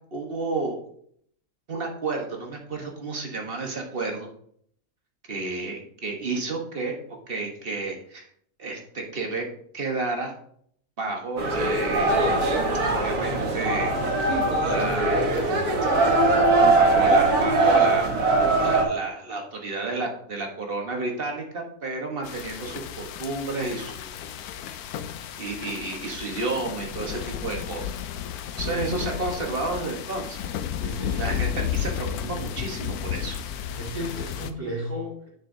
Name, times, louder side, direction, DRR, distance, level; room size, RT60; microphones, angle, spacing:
voice 1, 0.1-0.8 1.7-4.3 5.3-7.0 7.3-8.2 8.6-9.5 9.7-10.3 11.0-12.3 12.9-14.0 14.6-15.4 16.7-18.1 18.6-24.2 25.4-27.9 28.6-30.4 31.1-33.4, right 3 dB, 40° right, 1 dB, 1.4 m, -31 dB
sound 1, 11.4-18.8, right 2 dB, 85° right, 1.8 m, -21 dB
sound 2, 22.2-34.5, left 9 dB, 85° left, 1.1 m, -33 dB
voice 2, 28.5-28.8 30.8-31.4 32.0-32.4 33.8-35.3, equal, 70° right, -5 dB, 4.2 m, -34 dB
9.7 x 7.0 x 2.7 m, 0.66 s
omnidirectional pair, 1.6 m